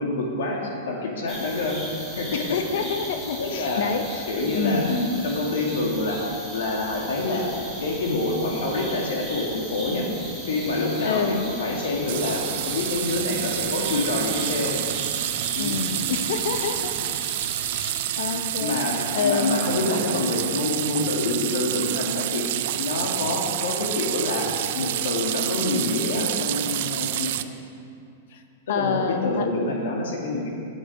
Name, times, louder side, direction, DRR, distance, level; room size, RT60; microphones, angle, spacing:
voice 1, 0.0-1.8 2.2-3.0 3.4-3.8 4.3-7.5 7.8-10.1 10.5-14.7 15.5-15.9 18.1-18.2 18.6-22.5 22.8-27.3 28.7-30.5, left 2 dB, 75° left, -1 dB, 2.0 m, -27 dB
sound 1, 1.3-17.9, equal, 10° left, 1.7 m, -37 dB
voice 2, 2.3-4.9 11.0-11.5 15.6-16.9 17.7-19.6 28.3-28.4 28.7-29.5, left 6 dB, 50° left, 7 dB, 0.7 m, -27 dB
sound 2, 12.1-27.4, right 13 dB, 45° right, 0.3 m, -28 dB
9.6 x 8.0 x 4.8 m, 2.5 s
supercardioid pair, 180°, 0 cm